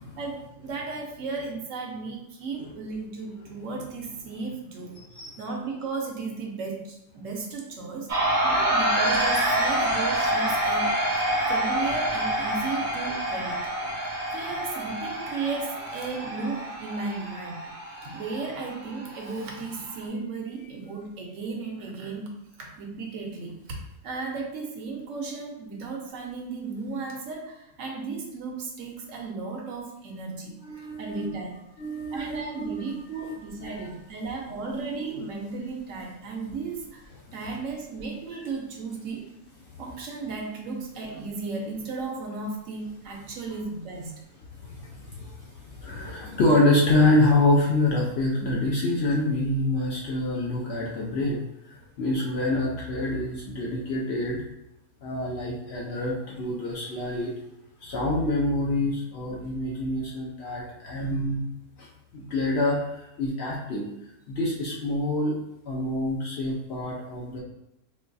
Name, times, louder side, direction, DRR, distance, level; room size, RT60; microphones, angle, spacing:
voice 1, 0.2-5.0 5.4-13.7 14.3-17.7 18.0-22.3 22.6-23.8 24.0-31.5 32.1-37.0 37.3-39.3 39.8-44.2, right 4 dB, 70° right, 0 dB, 1.0 m, -35 dB
voice 2, 5.0-5.4 30.6-31.3 31.8-32.8 33.3-33.4 33.6-33.9 44.6-51.4 51.7-54.4 55.0-57.3 57.8-61.4 61.8-61.9 62.1-63.8 64.3-65.3 65.7-67.4, left 2 dB, 65° left, -3 dB, 0.7 m, -26 dB
sound 1, 8.1-20.1, right 1 dB, 45° right, 0.7 m, -27 dB
3.8 x 2.2 x 2.5 m, 0.84 s
omnidirectional pair, 1.5 m